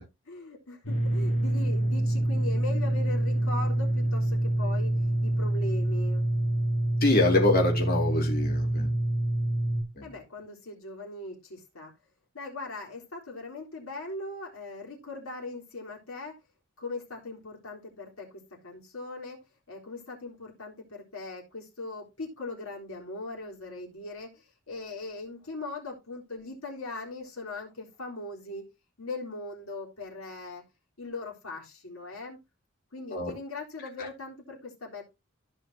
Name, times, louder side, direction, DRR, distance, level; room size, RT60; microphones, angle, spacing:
voice 1, 0.3-6.3 10.0-11.9 12.3-16.4 16.8-19.4 19.7-28.6 29.0-30.6 31.0-32.4 32.9-35.0, left 2 dB, 85° left, -1 dB, 4.0 m, -40 dB
sound 1, 0.8-9.8, right 1 dB, 70° left, 2.4 m, -26 dB
voice 2, 7.0-8.9 10.0-10.1 33.1-33.3, left 2 dB, 50° left, 0 dB, 3.5 m, -25 dB
15.5 x 5.5 x 2.8 m, 0.24 s
head